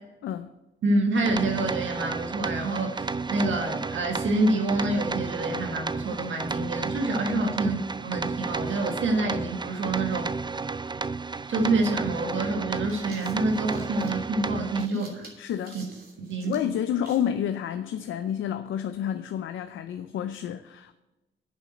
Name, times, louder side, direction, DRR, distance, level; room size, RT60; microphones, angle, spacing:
voice 1, 0.8-10.3 11.5-15.1 15.7-15.9 16.2-16.6, right 2 dB, 75° right, 2 dB, 1.7 m, -27 dB
sound 1, 1.1-14.9, right 4 dB, 25° right, 0.5 m, -32 dB
sound 2, 11.5-11.6 12.6-17.3, right 2 dB, 50° right, 2.9 m, -50 dB
voice 2, 14.9-15.8 16.4-20.9, left 9 dB, 85° left, 10 dB, 0.5 m, -30 dB
8.4 x 7.2 x 7.8 m, 1.0 s
cardioid pair, 60°, 20 cm